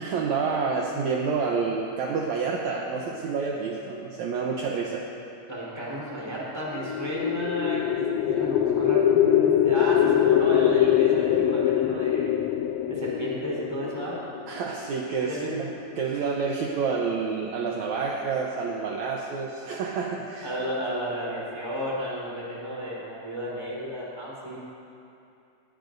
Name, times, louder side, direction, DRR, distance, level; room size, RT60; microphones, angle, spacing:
voice 1, 0.0-5.0 14.5-15.7 16.0-20.5, right 5 dB, 70° right, -1 dB, 2.0 m, -28 dB
voice 2, 5.5-12.3 12.9-14.2 15.3-15.5 20.4-24.6, right 1 dB, 10° right, -7 dB, 3.6 m, -33 dB
sound 1, 6.7-14.8, left 10 dB, 85° left, 1.5 m, -23 dB
19.5 x 17.5 x 2.6 m, 2.6 s
omnidirectional pair, 3.7 m